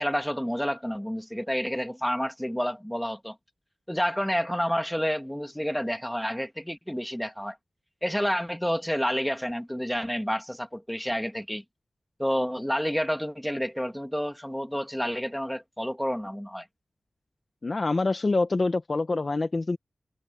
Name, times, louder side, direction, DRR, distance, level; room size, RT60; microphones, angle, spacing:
voice 1, 0.0-3.4 3.9-7.6 8.0-11.6 12.2-16.7, equal, 5° left, 2.4 m, -29 dB
voice 2, 17.6-19.8, left 3 dB, 45° left, 0.9 m, -26 dB
wide cardioid pair, 105°, 0 cm